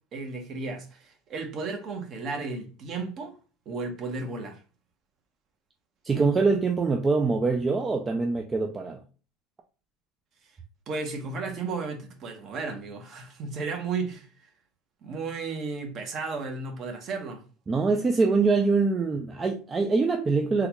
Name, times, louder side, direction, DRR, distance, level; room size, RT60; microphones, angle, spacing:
voice 1, 0.1-3.3 3.7-4.6 10.9-14.3 15.0-17.4, right 4 dB, 35° right, 0.8 m, -34 dB
voice 2, 6.0-9.0 17.7-20.7, right 4 dB, 20° right, 0.3 m, -24 dB
3.7 x 2.2 x 2.9 m
cardioid pair, 145°, 0 cm